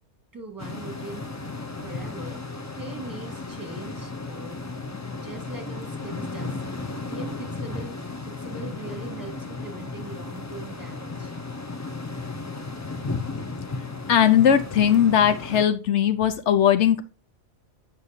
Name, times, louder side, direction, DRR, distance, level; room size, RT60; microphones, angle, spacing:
voice 1, 0.3-1.2 1.8-4.6 5.2-6.6 7.1-8.0 8.2-11.3, right 2 dB, 15° right, 1 dB, 1.8 m, -41 dB
sound 1, 0.6-15.7, left 3 dB, 25° left, 0.4 m, -34 dB
voice 2, 14.1-17.0, left 9 dB, 75° left, 10 dB, 0.9 m, -19 dB
8.1 x 5.6 x 2.8 m, 0.31 s
omnidirectional pair, 1.2 m